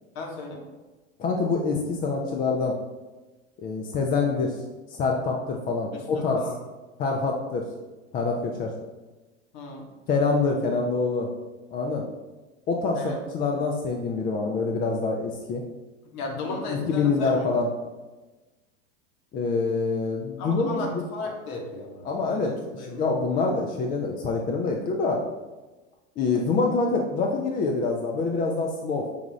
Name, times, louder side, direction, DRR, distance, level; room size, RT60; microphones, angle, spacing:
voice 1, 0.1-0.7 5.9-6.6 9.5-9.9 12.9-13.2 16.0-17.5 20.4-23.0, left 2 dB, 45° left, 1 dB, 1.1 m, -36 dB
voice 2, 1.2-2.7 3.6-4.6 4.9-6.4 7.0-7.7 8.1-8.7 10.1-11.3 11.7-12.1 12.7-15.6 16.4-17.7 19.3-21.3 22.0-25.2 26.2-29.1, left 4 dB, 25° left, 0 dB, 0.4 m, -26 dB
5.4 x 2.4 x 3.0 m, 1.2 s
hypercardioid pair, 100°, 37 cm